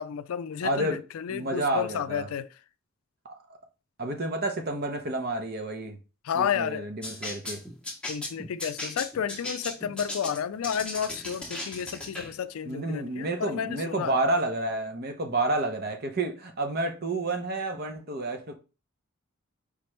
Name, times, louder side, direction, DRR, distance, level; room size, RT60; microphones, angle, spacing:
voice 1, 0.0-2.5 6.2-6.9 8.1-14.1, left 8 dB, 85° left, 0.3 m, -31 dB
voice 2, 0.6-1.0 1.3-2.3 3.2-3.3 4.0-6.0 6.3-7.6 12.7-18.5, right 2 dB, 45° right, 0.8 m, -30 dB
sound 1, 7.0-12.3, left 2 dB, 5° left, 0.8 m, -37 dB
4.9 x 3.0 x 3.2 m
head